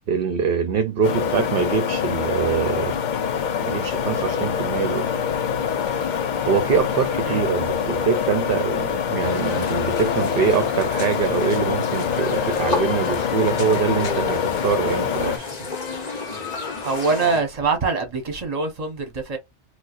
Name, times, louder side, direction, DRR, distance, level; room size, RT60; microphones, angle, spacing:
voice 1, 0.1-3.0 3.6-5.1 5.8-6.0 6.5-15.7, right 6 dB, 60° right, 0.7 m, -24 dB
sound 1, 1.0-15.4, left 7 dB, 55° left, 0.5 m, -25 dB
sound 2, 9.2-17.4, left 4 dB, 40° left, 0.9 m, -31 dB
voice 2, 16.8-19.4, right 4 dB, 35° right, 1.0 m, -24 dB
4.4 x 2.2 x 2.4 m
omnidirectional pair, 1.2 m